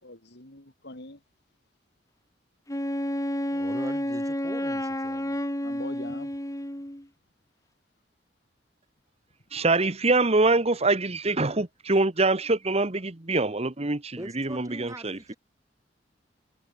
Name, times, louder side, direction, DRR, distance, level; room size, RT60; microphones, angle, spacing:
voice 1, 0.0-1.2 5.6-6.3, left 2 dB, 65° left, 4.4 m, -43 dB
Wind instrument woodwind instrument, 2.7-7.0, left 1 dB, 20° left, 3.3 m, -30 dB
voice 2, 3.5-5.4 14.2-15.4, right 1 dB, 20° right, 6.6 m, -42 dB
voice 3, 9.5-15.3, right 3 dB, 35° right, 1.5 m, -24 dB
head